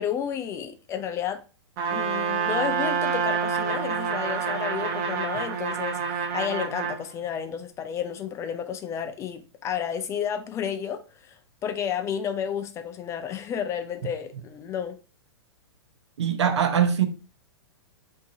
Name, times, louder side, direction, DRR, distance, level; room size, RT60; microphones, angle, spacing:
voice 1, 0.0-1.4 1.9-15.0, left 8 dB, 20° left, 0.3 m, -31 dB
Trumpet, 1.8-7.0, right 6 dB, 45° right, 0.9 m, -27 dB
voice 2, 16.2-17.1, right 8 dB, 80° right, 0.7 m, -22 dB
4.6 x 2.7 x 2.6 m
hypercardioid pair, 125°, 15 cm